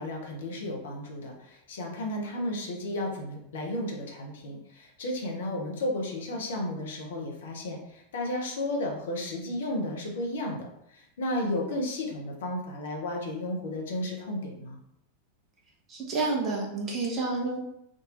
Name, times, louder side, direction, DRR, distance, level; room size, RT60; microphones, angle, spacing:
voice 1, 0.0-14.8, left 1 dB, 60° left, -1 dB, 0.9 m, -33 dB
voice 2, 15.9-17.6, right 3 dB, 30° right, -3 dB, 1.3 m, -29 dB
3.8 x 2.6 x 3.8 m, 0.78 s
figure-of-eight pair, 90°, 0 cm